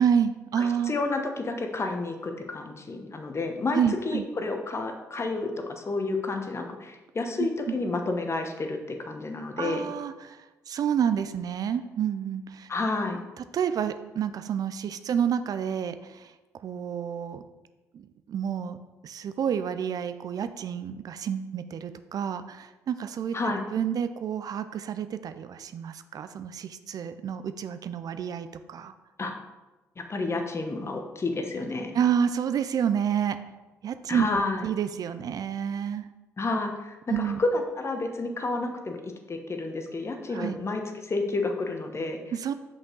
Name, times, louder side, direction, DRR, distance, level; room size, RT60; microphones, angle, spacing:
voice 1, 0.0-0.9 3.7-4.2 7.4-7.8 9.6-12.7 13.4-16.3 16.6-17.4 17.9-18.8 19.0-28.9 31.9-33.4 33.8-36.1 37.1-37.4 40.3-40.6 42.3-42.5, right 8 dB, 55° right, 10 dB, 0.4 m, -29 dB
voice 2, 0.6-3.8 4.0-9.9 12.7-13.2 23.3-23.6 29.2-29.3 30.0-32.0 34.1-34.6 36.4-42.2, left 3 dB, 35° left, 5 dB, 1.0 m, -30 dB
5.9 x 5.3 x 3.8 m, 1.1 s
hypercardioid pair, 50°, 8 cm